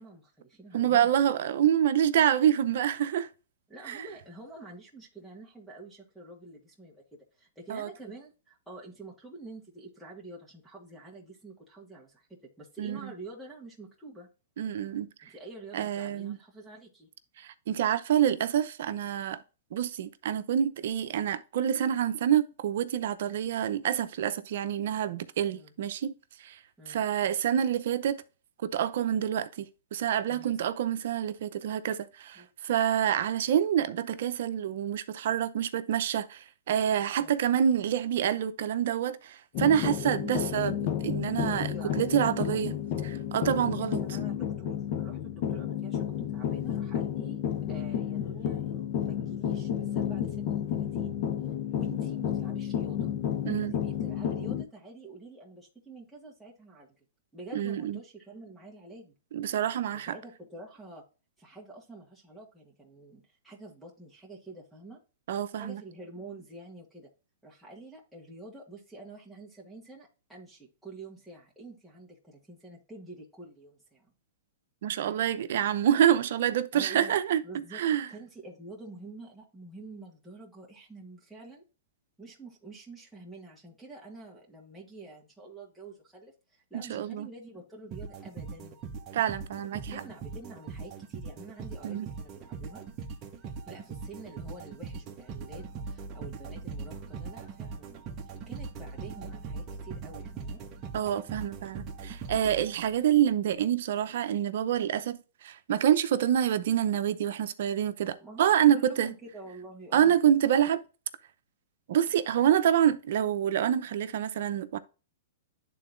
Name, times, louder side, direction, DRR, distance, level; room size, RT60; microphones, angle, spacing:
voice 1, 0.0-1.1 3.7-14.3 15.2-17.1 25.5-25.7 26.8-27.0 30.3-30.6 32.3-32.5 37.2-37.3 41.7-42.6 43.5-47.4 47.7-48.6 49.0-51.2 51.8-53.1 53.4-57.0 57.3-59.1 59.9-61.0 61.4-65.0 65.6-67.1 67.4-74.1 76.7-81.6 82.2-88.8 89.9-92.8 93.7-98.0 98.5-100.6 108.2-110.2, right 2 dB, ahead, 1.7 m, -47 dB
voice 2, 0.7-3.3 3.9-4.0 7.7-7.9 12.8-13.1 14.6-15.1 15.7-16.4 17.4-19.4 19.7-26.1 26.4-26.6 26.9-28.2 28.6-40.8 41.0-42.7 43.1-44.0 53.5-53.7 57.5-58.0 59.3-60.1 65.3-65.8 74.8-77.4 77.7-78.1 86.7-87.3 89.1-90.0 91.8-92.1 100.9-109.1 109.9-110.8 111.9-114.8, right 10 dB, 65° right, 0.7 m, -27 dB
sound 1, 39.5-54.6, left 9 dB, 50° left, 0.8 m, -31 dB
sound 2, 87.9-103.2, right 5 dB, 30° right, 1.1 m, -41 dB
11.0 x 3.9 x 2.6 m
hypercardioid pair, 135°, 0 cm